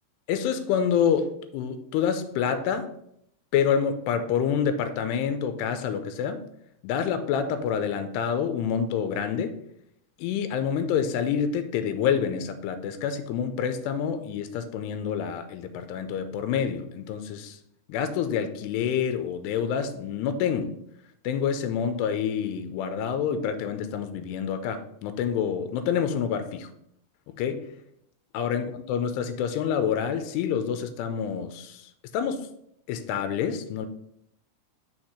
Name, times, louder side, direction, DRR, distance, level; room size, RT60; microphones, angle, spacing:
voice 1, 0.3-2.9 3.5-6.4 6.8-9.6 10.2-17.6 17.9-20.8 21.2-26.7 27.4-27.7 28.3-31.9 32.1-32.5 32.9-33.9, left 7 dB, 85° left, 2.7 m, -27 dB
5.9 x 4.5 x 4.8 m
omnidirectional pair, 4.8 m